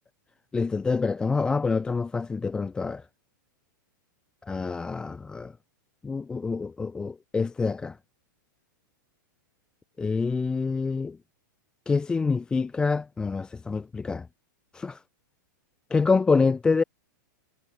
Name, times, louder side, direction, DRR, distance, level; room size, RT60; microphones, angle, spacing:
voice 1, 0.5-3.0 4.5-5.5 6.0-8.0 10.0-11.2 11.9-14.3 14.7-15.0 15.9-16.8, left 4 dB, 10° left, 0.5 m, -26 dB
supercardioid pair, 160°, 11 cm